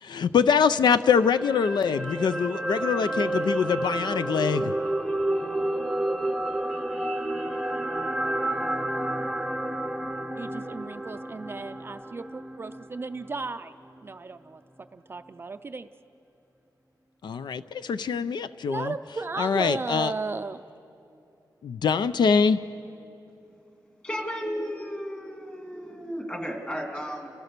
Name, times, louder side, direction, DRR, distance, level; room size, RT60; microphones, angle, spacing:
voice 1, 0.0-4.7 17.2-18.9 19.4-20.1 21.6-22.6, left 6 dB, 90° left, 13 dB, 0.5 m, -24 dB
sound 1, 1.2-13.5 13.8-14.0, right 1 dB, ahead, 0.8 m, -30 dB
voice 2, 10.4-13.7 14.0-15.9 18.7-20.6, right 4 dB, 30° right, 8 dB, 0.4 m, -35 dB
voice 3, 24.0-27.3, equal, 20° left, 1 dB, 2.4 m, -34 dB
30.0 x 16.0 x 6.7 m, 2.8 s
wide cardioid pair, 175°, 7 cm